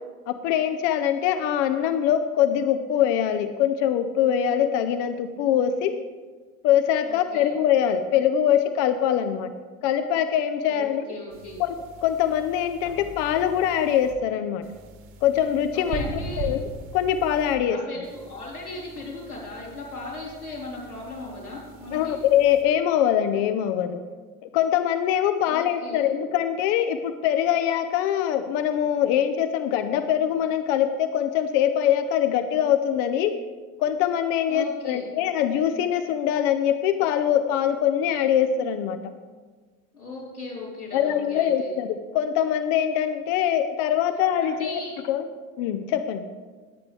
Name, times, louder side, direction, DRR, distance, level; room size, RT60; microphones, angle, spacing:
voice 1, 0.3-6.0 6.6-9.5 9.8-11.0 11.6-11.7 12.0-14.6 15.2-16.0 16.4-16.6 16.9-17.8 21.9-24.0 24.5-33.3 33.8-39.0 40.9-44.8 45.1-45.3 45.6-46.2, left 10 dB, 40° left, 9 dB, 0.6 m, -23 dB
voice 2, 7.0-7.5 10.6-11.6 15.7-16.5 17.7-22.2 25.4-26.0 34.5-35.0 39.9-41.7 44.4-44.9, left 2 dB, 90° left, -7 dB, 3.9 m, -37 dB
sound 1, 11.3-14.1 14.6-17.5 18.0-22.6, right 2 dB, 45° right, 1.8 m, -40 dB
20.5 x 8.1 x 3.3 m, 1.4 s
figure-of-eight pair, 80°, 42 cm